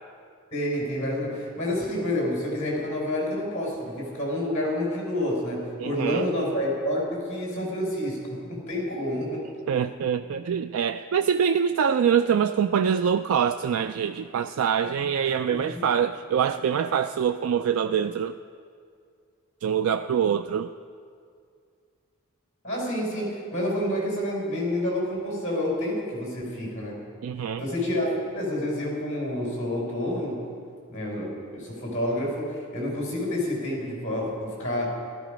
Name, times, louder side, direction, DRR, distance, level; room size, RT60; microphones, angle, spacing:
voice 1, 0.5-9.5 15.5-15.6 22.6-27.0 27.6-30.4 30.9-34.9, left 1 dB, 35° left, -3 dB, 5.0 m, -28 dB
voice 2, 5.8-6.3 9.7-18.4 19.6-20.7 27.2-27.6, right 7 dB, 80° right, 9 dB, 0.3 m, -24 dB
16.5 x 13.0 x 5.1 m, 2.2 s
head